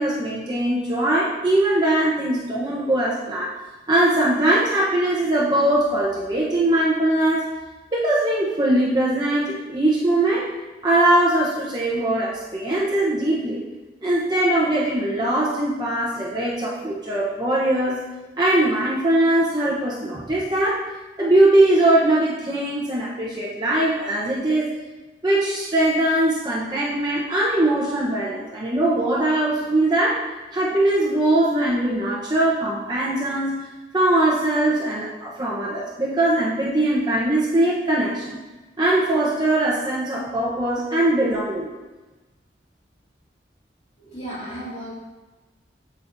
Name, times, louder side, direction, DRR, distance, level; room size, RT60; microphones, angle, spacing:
voice 1, 0.0-3.6 3.9-7.5 7.9-10.5 10.8-13.6 14.0-18.0 18.4-20.9 21.2-24.7 25.2-30.2 30.5-33.5 33.9-38.4 38.8-41.7, right 1 dB, 25° right, -6 dB, 0.9 m, -21 dB
voice 2, 44.0-44.9, right 1 dB, 35° left, -8 dB, 2.6 m, -34 dB
8.5 x 7.3 x 2.7 m, 1.2 s
head